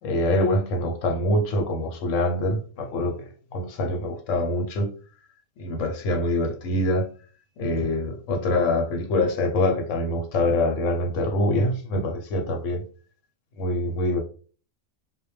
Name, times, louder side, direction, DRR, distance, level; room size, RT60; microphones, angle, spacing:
voice 1, 0.0-3.1 3.5-4.9 5.6-7.1 7.6-12.8 13.6-14.2, left 1 dB, 70° left, 0.9 m, -24 dB
2.2 x 2.1 x 3.0 m
omnidirectional pair, 1.4 m